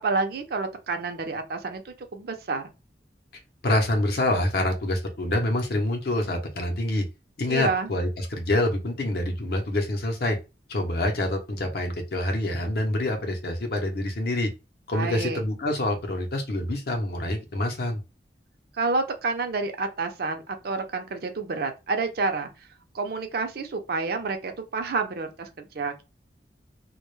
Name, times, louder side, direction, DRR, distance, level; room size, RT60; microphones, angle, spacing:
voice 1, 0.0-2.7 7.5-7.9 14.9-15.4 18.8-22.5 22.9-25.9, right 3 dB, 60° right, 0.5 m, -29 dB
voice 2, 3.6-7.1 7.4-10.4 10.7-14.5 14.9-18.0, left 1 dB, 60° left, 0.6 m, -26 dB
2.1 x 2.0 x 3.0 m
head